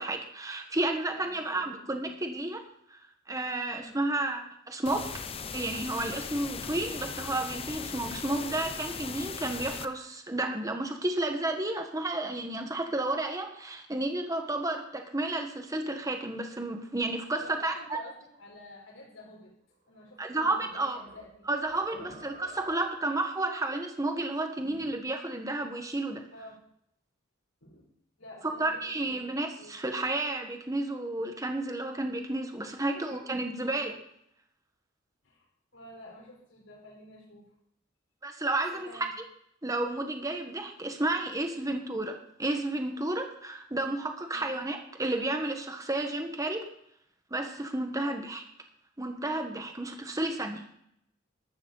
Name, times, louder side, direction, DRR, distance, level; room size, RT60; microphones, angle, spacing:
voice 1, 0.0-3.0 3.3-5.1 5.5-18.0 20.2-21.0 21.5-26.2 28.4-34.0 38.2-39.1 39.6-46.7 47.3-48.4 49.0-50.7, right 2 dB, 15° right, 5 dB, 1.3 m, -32 dB
voice 2, 1.1-2.1 3.7-4.0 6.5-6.7 17.4-19.5 19.9-21.5 21.9-22.2 24.6-24.9 26.3-26.6 27.6-27.8 28.2-29.8 32.8-33.2 35.2-37.5 38.7-39.1 41.5-41.8 44.3-44.5 48.0-48.2, left 1 dB, 85° left, -2 dB, 4.2 m, -50 dB
sound 1, 4.9-9.9, left 5 dB, 30° left, 0.7 m, -38 dB
sound 2, 20.0-21.3 21.7-23.1, right 2 dB, 45° right, 3.6 m, -50 dB
14.0 x 13.0 x 4.0 m, 0.73 s
head